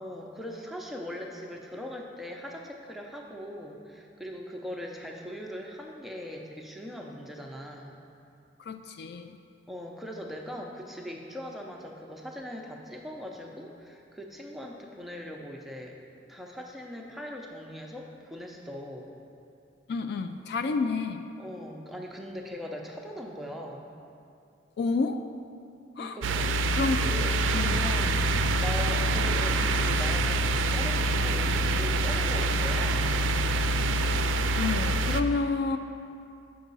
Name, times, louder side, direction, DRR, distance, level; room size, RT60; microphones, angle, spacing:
voice 1, 0.0-8.0 9.7-16.0 16.3-19.1 21.4-23.9 26.0-26.5 27.0-28.2 28.6-33.2, equal, ahead, -1 dB, 0.5 m, -40 dB
voice 2, 8.6-9.4 19.9-21.2 24.8-25.2 26.0-26.2 26.7-27.0 27.5-27.8 34.5-35.8, left 4 dB, 60° left, 7 dB, 0.3 m, -29 dB
sound 1, 26.2-35.2, right 2 dB, 90° right, 0.3 m, -26 dB
7.2 x 4.8 x 5.3 m, 2.6 s
head